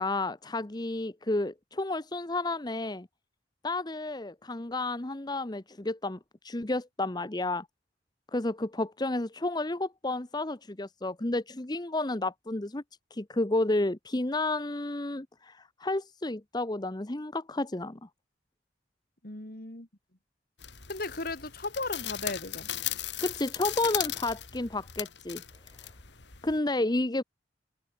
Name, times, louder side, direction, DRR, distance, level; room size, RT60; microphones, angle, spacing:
voice 1, 0.0-3.1 3.6-6.2 6.4-7.7 8.3-12.8 13.1-18.1 23.2-25.4 25.8-25.9 26.4-27.2, left 2 dB, 25° left, 0.9 m, -31 dB
voice 2, 19.2-19.9 20.9-22.8, left 2 dB, 55° left, 3.3 m, -36 dB
sound 1, 20.6-26.6, left 12 dB, 80° left, 3.2 m, -37 dB
head